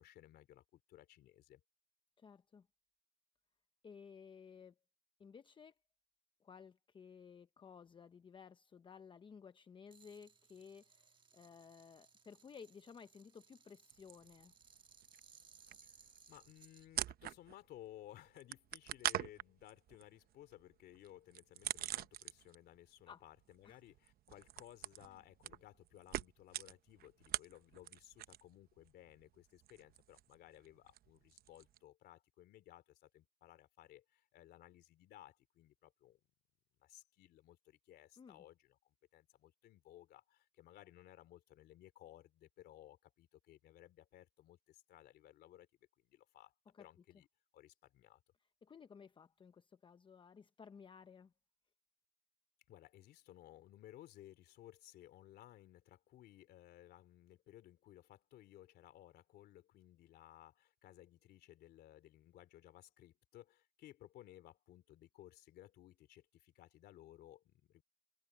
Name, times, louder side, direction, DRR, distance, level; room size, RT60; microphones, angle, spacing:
voice 1, 0.0-1.6 15.8-36.2 36.8-45.7 46.0-46.5 46.8-47.3 47.5-48.2 52.7-67.8, left 13 dB, 75° left, 3.3 m, -59 dB
voice 2, 2.2-2.7 3.8-4.8 5.2-5.7 6.4-14.5 23.1-23.2 23.6-23.8 38.2-38.4 46.7-46.9 48.6-51.3, left 6 dB, 30° left, 0.7 m, -57 dB
sound 1, 9.9-16.9, right 5 dB, 30° right, 1.3 m, -65 dB
sound 2, 13.9-14.8 15.0-17.8 18.0-22.7 23.0-28.6 28.8-31.8, right 13 dB, 65° right, 0.9 m, -44 dB
open air
cardioid pair, 110°, 17 cm